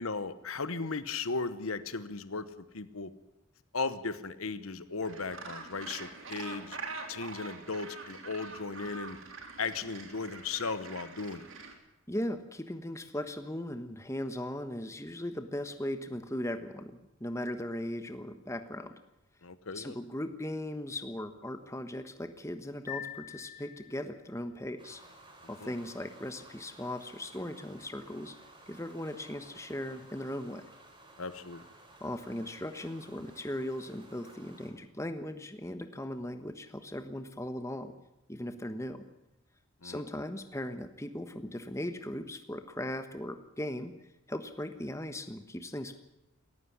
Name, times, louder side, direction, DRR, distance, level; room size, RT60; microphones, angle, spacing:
voice 1, 0.0-3.1 3.7-6.8 7.1-9.2 9.6-11.4 19.4-20.0 25.6-25.7 31.2-31.6 39.8-40.0, left 4 dB, 75° left, 13 dB, 1.1 m, -36 dB
Gull seagull, 5.0-11.7, right 4 dB, 65° right, 3.2 m, -44 dB
voice 2, 12.1-18.9 19.7-25.0 25.5-28.3 28.7-30.6 32.0-37.9 38.3-39.0 39.8-43.9 44.3-45.9, left 1 dB, 15° left, 9 dB, 1.2 m, -38 dB
sound 1, 22.9-24.3, left 10 dB, 40° left, 3.3 m, -44 dB
sound 2, 24.8-34.7, right 2 dB, 20° right, 4.8 m, -55 dB
18.0 x 15.0 x 9.8 m, 0.94 s
head